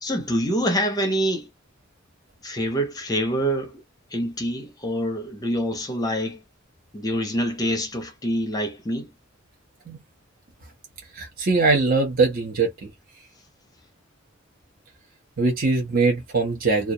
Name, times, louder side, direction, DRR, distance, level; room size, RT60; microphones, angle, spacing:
voice 1, 0.0-1.5 2.4-3.8 4.1-6.4 6.9-9.1, equal, 20° left, 0.5 m, -26 dB
voice 2, 11.1-12.9 15.4-16.9, right 3 dB, 45° right, 0.7 m, -22 dB
2.3 x 2.0 x 2.6 m
head